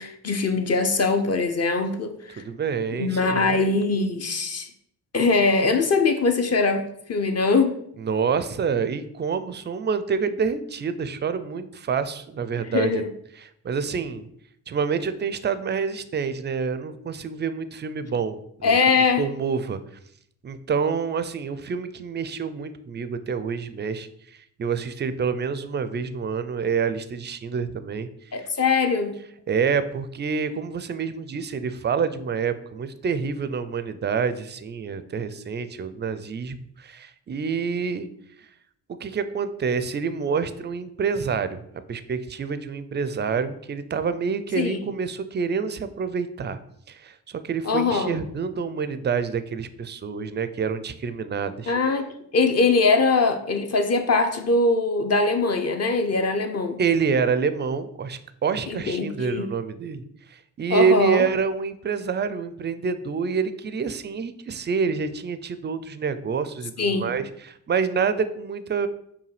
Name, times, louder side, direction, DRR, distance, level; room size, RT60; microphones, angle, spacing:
voice 1, 0.0-2.4 2.9-4.7 5.1-7.7 12.7-13.1 18.6-19.2 28.3-29.1 44.6-44.8 47.6-48.2 51.7-56.8 58.7-59.5 60.7-61.2 66.8-67.2, left 3 dB, 35° left, 6 dB, 0.6 m, -22 dB
voice 2, 2.4-3.6 8.0-13.0 13.4-14.3 14.7-18.8 19.2-19.8 20.4-28.1 28.3-28.5 29.5-38.1 38.9-41.6 41.9-46.6 46.9-51.7 56.8-60.0 60.3-68.9, right 6 dB, 25° right, 12 dB, 0.3 m, -27 dB
5.6 x 2.3 x 3.2 m, 0.73 s
supercardioid pair, 45°, 43 cm